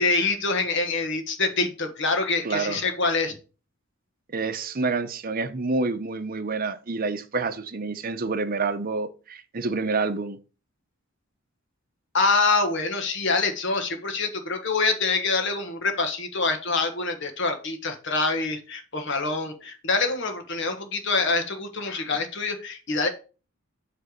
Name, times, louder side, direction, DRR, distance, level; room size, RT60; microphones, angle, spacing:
voice 1, 0.0-3.3 12.1-23.1, left 3 dB, 60° left, 1.4 m, -25 dB
voice 2, 2.4-2.8 4.3-10.4, right 3 dB, 45° right, 0.7 m, -28 dB
7.8 x 3.4 x 6.2 m
head